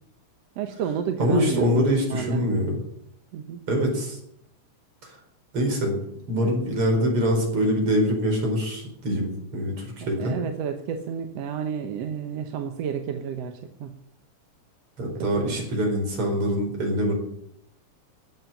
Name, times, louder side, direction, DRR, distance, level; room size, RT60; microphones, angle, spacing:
voice 1, 0.6-1.8 2.1-2.5 3.3-3.6 6.3-6.5 10.0-13.5 13.8-13.9 15.2-15.7, right 8 dB, 65° right, 5 dB, 1.9 m, -31 dB
voice 2, 1.2-2.8 3.7-4.2 5.5-5.9 6.3-10.4 15.0-17.1, equal, 45° right, 1 dB, 5.4 m, -24 dB
14.5 x 8.6 x 8.8 m, 0.73 s
omnidirectional pair, 3.5 m